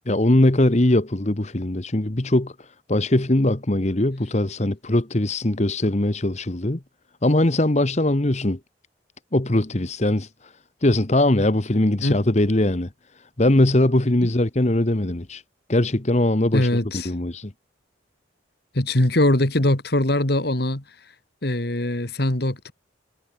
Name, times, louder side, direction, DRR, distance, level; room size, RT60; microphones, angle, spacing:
voice 1, 0.1-6.8 7.2-8.6 9.3-10.5 10.8-12.9 13.4-15.4 15.7-16.7 16.9-17.5, left 1 dB, 35° left, 1.2 m, -21 dB
voice 2, 16.5-17.1 18.7-20.8 21.4-22.7, left 1 dB, 55° left, 2.2 m, -22 dB
head